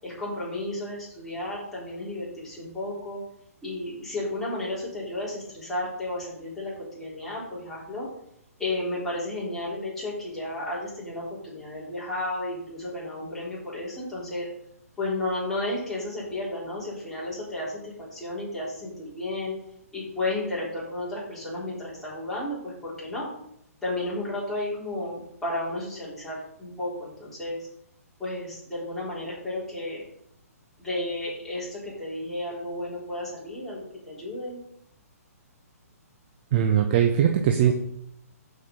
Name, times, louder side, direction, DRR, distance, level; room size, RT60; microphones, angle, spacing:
voice 1, 0.0-3.2 3.6-8.1 8.6-14.5 15.0-19.5 19.9-23.3 23.8-27.6 28.2-30.0 30.8-34.6, left 2 dB, 5° left, -8 dB, 4.1 m, -33 dB
voice 2, 36.5-37.7, right 9 dB, 35° right, 4 dB, 0.8 m, -20 dB
12.5 x 5.3 x 4.0 m, 0.74 s
figure-of-eight pair, 125°, 8 cm